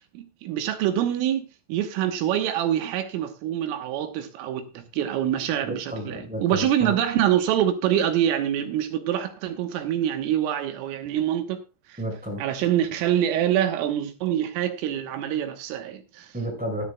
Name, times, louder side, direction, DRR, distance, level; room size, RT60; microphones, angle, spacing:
voice 1, 0.0-11.6 11.9-12.0 12.4-16.3, right 11 dB, 85° right, 3.7 m, -25 dB
voice 2, 5.7-7.0 12.0-12.4 16.3-16.9, right 1 dB, ahead, 5.0 m, -31 dB
13.5 x 13.0 x 2.3 m
omnidirectional pair, 5.8 m